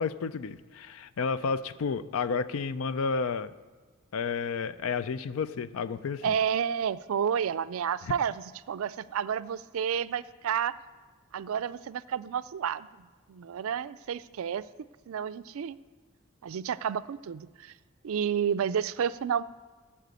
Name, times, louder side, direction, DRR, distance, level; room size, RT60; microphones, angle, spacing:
voice 1, 0.0-3.5 4.1-6.3, left 5 dB, 80° left, 15 dB, 0.4 m, -31 dB
voice 2, 6.2-10.8 11.3-12.9 13.3-14.7 15.1-15.8 16.4-17.7 18.0-19.4, right 8 dB, 75° right, 16 dB, 0.4 m, -30 dB
9.1 x 7.4 x 8.1 m, 1.4 s
head